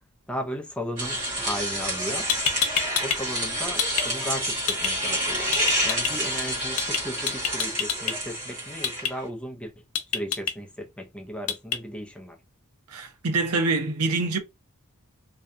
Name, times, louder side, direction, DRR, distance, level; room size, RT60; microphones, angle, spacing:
voice 1, 0.3-2.3 3.0-5.5 5.8-9.7 10.1-12.4, equal, 5° left, 0.5 m, -35 dB
sound 1, 1.0-9.2, equal, 35° right, 1.1 m, -29 dB
sound 2, 2.0-2.1 2.3-3.2 3.5-4.1 4.7-4.9 5.5-6.1 6.8-7.0 7.3-8.1 8.8-9.1 10.0-10.5 11.5-11.8, left 8 dB, 75° left, 0.5 m, -26 dB
voice 2, 12.9-14.4, right 3 dB, 80° right, 0.7 m, -25 dB
2.7 x 2.2 x 2.4 m
head